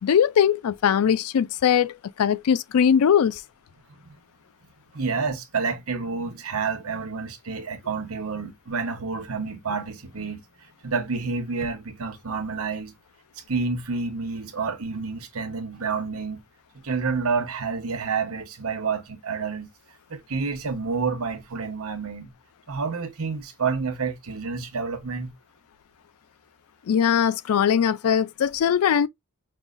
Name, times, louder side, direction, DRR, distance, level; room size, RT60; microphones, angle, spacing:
voice 1, 0.0-3.4 26.9-29.1, left 8 dB, 80° left, 0.4 m, -21 dB
voice 2, 4.9-10.4 10.8-12.9 13.5-16.4 16.8-19.7 20.1-22.3 22.7-25.3, right 4 dB, 75° right, 1.0 m, -29 dB
5.4 x 2.3 x 2.5 m
head